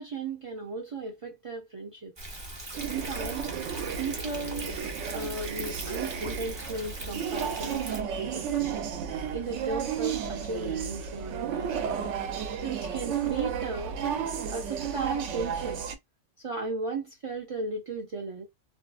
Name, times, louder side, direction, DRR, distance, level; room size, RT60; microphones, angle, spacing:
voice 1, 0.0-2.1 2.9-3.5 4.0-4.8 5.1-8.8 9.3-12.2 12.6-14.0 14.5-15.9 16.4-18.5, right 3 dB, 55° right, 0.3 m, -36 dB
Thunder, 2.2-8.0, right 1 dB, 25° right, 0.7 m, -40 dB
sound 1, 2.7-16.0, right 7 dB, 80° right, 0.9 m, -33 dB
2.6 x 2.2 x 2.3 m
omnidirectional pair, 1.2 m